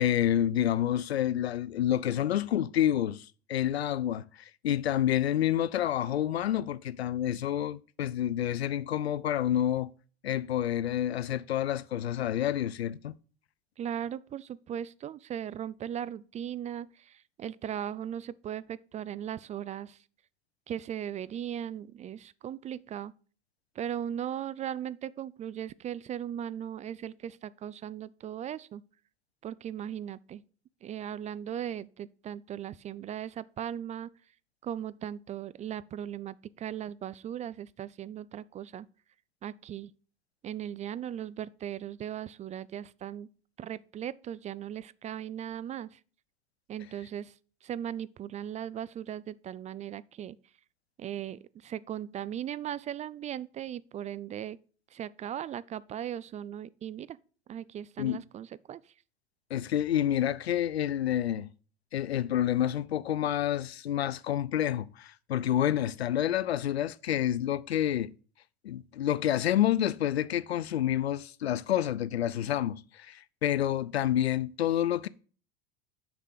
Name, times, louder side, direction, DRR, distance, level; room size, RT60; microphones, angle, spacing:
voice 1, 0.0-9.9 10.2-13.1 58.0-58.2 59.5-61.5 61.9-68.1 68.6-75.1, left 11 dB, 85° left, 0.5 m, -28 dB
voice 2, 13.8-20.0 20.7-23.1 23.8-28.8 29.4-30.4 30.8-34.1 34.6-38.9 39.4-39.9 40.4-43.3 43.6-46.0 46.7-47.3 47.6-50.4 51.0-54.6 54.9-57.2 57.5-58.9, right 10 dB, 25° right, 0.4 m, -38 dB
6.5 x 6.0 x 6.7 m
figure-of-eight pair, 80°, 31 cm